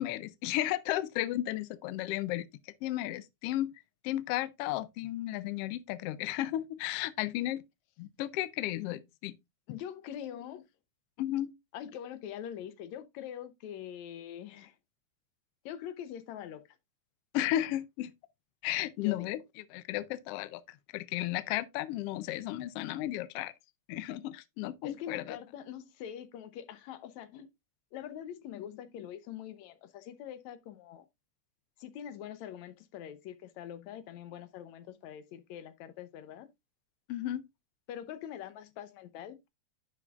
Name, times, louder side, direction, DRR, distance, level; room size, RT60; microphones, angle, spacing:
voice 1, 0.0-2.5 2.8-3.7 4.0-7.6 8.0-9.4 11.2-11.5 17.3-18.1 18.6-19.4 19.7-20.6 20.9-23.5 23.9-25.4 37.1-37.4, left 14 dB, 90° left, 1.3 m, -34 dB
voice 2, 9.7-10.6 11.7-14.8 15.7-16.6 19.0-19.3 24.8-27.5 27.9-31.1 31.8-36.5 37.9-39.5, left 10 dB, 75° left, 2.1 m, -44 dB
10.5 x 6.0 x 2.4 m
omnidirectional pair, 3.5 m